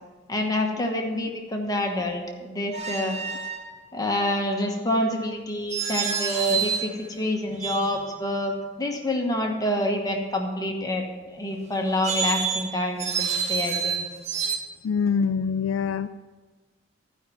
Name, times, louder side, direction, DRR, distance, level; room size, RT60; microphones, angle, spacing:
voice 1, 0.3-3.2 3.9-11.0 11.3-14.0, left 1 dB, 20° left, 1 dB, 1.2 m, -27 dB
sound 1, 2.7-3.7 5.7-7.0 7.5-8.2 11.8-14.6, right 6 dB, 35° right, 1.0 m, -28 dB
voice 2, 14.8-16.1, left 6 dB, 75° left, 10 dB, 0.3 m, -24 dB
12.5 x 5.4 x 7.7 m, 1.3 s
head